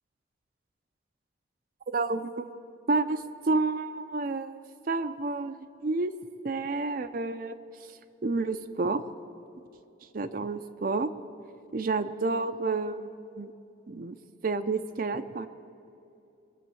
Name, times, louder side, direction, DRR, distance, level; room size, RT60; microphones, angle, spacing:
voice 1, 1.9-2.5 2.9-4.6 4.9-6.1 6.4-7.6 8.2-9.0 10.1-11.1 11.7-13.5 13.9-14.2 14.4-15.5, right 3 dB, 45° right, 9 dB, 0.5 m, -30 dB
22.5 x 7.7 x 7.0 m, 2.7 s
head